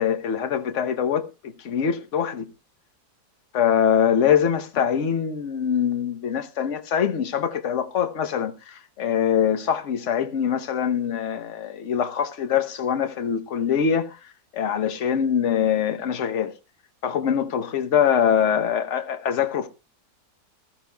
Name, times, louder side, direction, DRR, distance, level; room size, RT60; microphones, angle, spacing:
voice 1, 0.0-2.5 3.5-14.2 14.5-16.5 17.0-19.7, left 8 dB, 50° left, 1.2 m, -23 dB
20.0 x 13.0 x 2.3 m
omnidirectional pair, 1.8 m